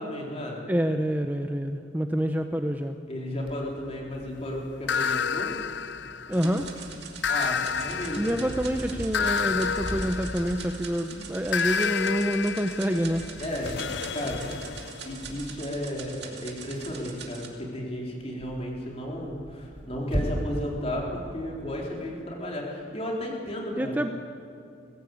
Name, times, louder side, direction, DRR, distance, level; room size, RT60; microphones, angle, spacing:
voice 1, 0.0-0.6 3.1-5.5 7.3-8.4 13.4-13.8 14.1-14.4 15.0-24.0, left 1 dB, 35° left, -1 dB, 4.1 m, -33 dB
voice 2, 0.7-3.0 6.3-6.7 8.2-13.2 23.8-24.1, equal, 10° right, 6 dB, 0.7 m, -27 dB
Purr, 3.4-22.1, equal, 30° right, 3.0 m, -40 dB
sound 1, 4.9-6.6 7.2-10.9 11.5-15.2, left 6 dB, 70° left, 0.5 m, -30 dB
sound 2, 6.3-17.5, right 7 dB, 65° right, 2.5 m, -44 dB
21.5 x 15.0 x 8.5 m, 2.5 s
head